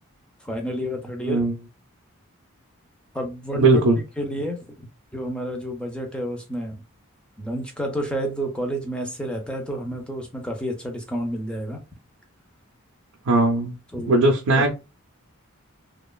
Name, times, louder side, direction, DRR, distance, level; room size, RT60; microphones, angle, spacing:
voice 1, 0.4-1.4 3.1-3.7 4.2-4.9 5.1-6.8 7.4-11.8 13.9-14.1 14.6-14.7, equal, 5° left, 0.4 m, -30 dB
voice 2, 3.5-4.0 13.3-13.8 14.1-14.7, right 2 dB, 80° right, 0.4 m, -18 dB
2.8 x 2.3 x 2.2 m
head